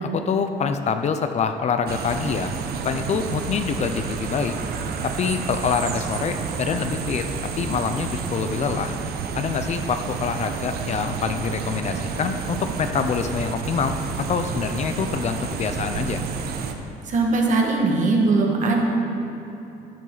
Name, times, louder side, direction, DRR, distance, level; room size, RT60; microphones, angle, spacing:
voice 1, 0.0-2.5 2.8-4.5 5.0-7.3 7.6-8.9 9.4-16.2, left 6 dB, 40° left, 8 dB, 0.6 m, -25 dB
sound 1, 1.9-16.7, right 6 dB, 70° right, 0.9 m, -30 dB
voice 2, 17.1-18.8, right 3 dB, 50° right, 0 dB, 2.0 m, -20 dB
12.5 x 9.3 x 4.0 m, 3.0 s
cardioid pair, 110°, 17 cm